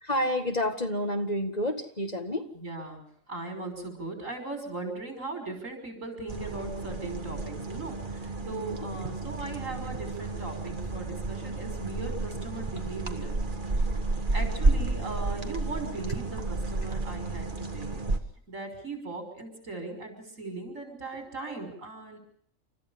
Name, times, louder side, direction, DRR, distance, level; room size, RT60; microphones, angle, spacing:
voice 1, 0.0-2.5 8.5-8.8 13.9-14.1, left 1 dB, 30° left, 5 dB, 2.0 m, -30 dB
voice 2, 2.5-3.0 3.3-13.3 14.3-18.0 18.5-22.2, right 3 dB, 80° right, 5 dB, 6.2 m, -38 dB
sound 1, 6.3-18.2, right 2 dB, 40° right, 2.0 m, -31 dB
30.0 x 14.0 x 7.2 m, 0.63 s
omnidirectional pair, 1.3 m